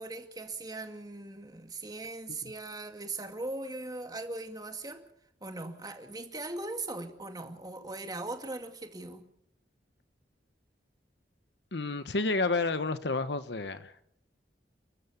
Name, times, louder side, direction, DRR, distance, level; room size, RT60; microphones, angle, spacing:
voice 1, 0.0-5.1 5.4-9.3, right 2 dB, 20° right, 2.2 m, -39 dB
voice 2, 11.7-13.9, left 3 dB, 70° left, 1.1 m, -30 dB
30.0 x 13.0 x 7.1 m
head